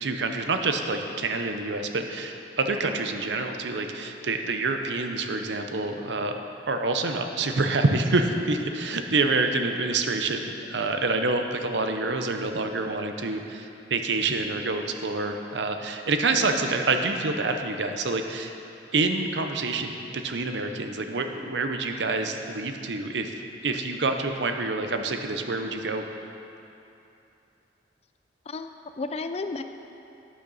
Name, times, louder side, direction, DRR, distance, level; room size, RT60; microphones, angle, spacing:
voice 1, 0.0-6.3 6.7-18.6 18.9-23.3 23.6-26.0, right 3 dB, 70° right, 5 dB, 0.7 m, -27 dB
voice 2, 28.5-29.6, left 3 dB, 35° left, 8 dB, 0.4 m, -33 dB
11.5 x 9.4 x 4.1 m, 2.8 s
head